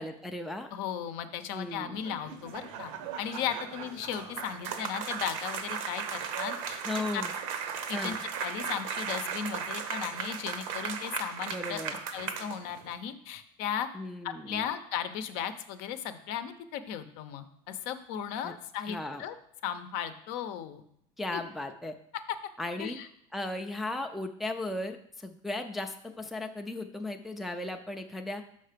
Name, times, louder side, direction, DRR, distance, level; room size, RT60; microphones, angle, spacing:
voice 1, 0.0-0.7 1.5-2.0 6.8-7.3 7.9-8.2 11.5-11.9 13.9-14.7 18.4-18.5 18.8-19.2 21.2-21.9 22.6-23.0 23.3-28.4, left 2 dB, ahead, 4 dB, 0.4 m, -36 dB
voice 2, 0.7-2.9 3.2-7.2 7.9-8.1 8.4-11.8 12.1-13.9 14.2-19.3 19.6-20.8 21.3-21.4 22.3-22.4 22.8-23.1, left 9 dB, 60° left, 10 dB, 0.7 m, -36 dB
sound 1, 1.9-12.9, right 7 dB, 75° right, 0.8 m, -37 dB
5.6 x 5.4 x 5.0 m, 0.73 s
supercardioid pair, 135°, 17 cm